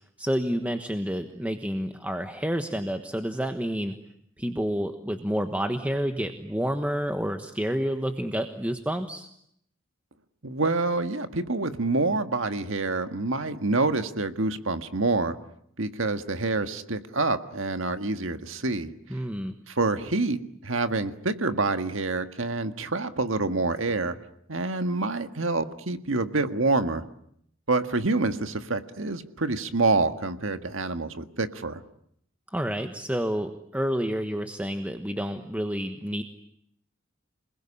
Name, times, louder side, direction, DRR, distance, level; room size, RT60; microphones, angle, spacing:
voice 1, 0.2-3.9 4.4-9.3 19.1-19.5 32.5-36.2, equal, 5° right, 7 dB, 1.2 m, -29 dB
voice 2, 10.4-15.4 15.8-18.9 19.7-24.2 24.5-27.0 27.7-31.8, right 3 dB, 70° right, 9 dB, 1.7 m, -27 dB
28.5 x 20.5 x 10.0 m, 0.72 s
head